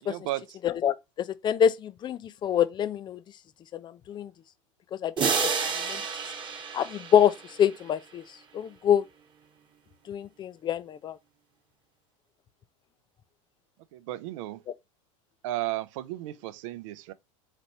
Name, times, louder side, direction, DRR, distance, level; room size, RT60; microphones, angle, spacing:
voice 1, 0.1-0.6 13.9-14.6 15.4-17.1, right 15 dB, 70° right, 0.5 m, -34 dB
voice 2, 0.6-0.9 1.4-3.2 3.7-4.3 5.0-5.5 5.9-6.0 6.7-7.3 7.6-8.2 8.5-9.0 10.1-11.2, left 9 dB, 25° left, 0.4 m, -25 dB
sound 1, 5.2-7.9, right 5 dB, 30° right, 1.1 m, -30 dB
4.1 x 3.2 x 2.8 m
hypercardioid pair, 105°, 17 cm